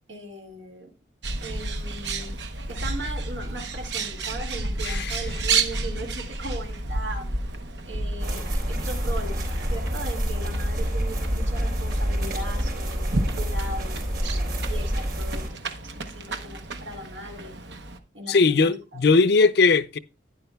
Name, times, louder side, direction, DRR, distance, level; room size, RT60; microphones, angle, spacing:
voice 1, 0.1-0.9 1.4-2.4 2.7-7.4 7.9-17.6 18.1-18.8, right 1 dB, 80° right, 2.2 m, -38 dB
Bird, 1.2-18.0, right 3 dB, 65° right, 0.9 m, -32 dB
voice 2, 4.8-5.2 18.3-20.0, left 4 dB, 60° left, 0.5 m, -19 dB
sound 1, 8.2-15.5, equal, 50° right, 3.7 m, -27 dB
11.0 x 10.0 x 2.3 m
head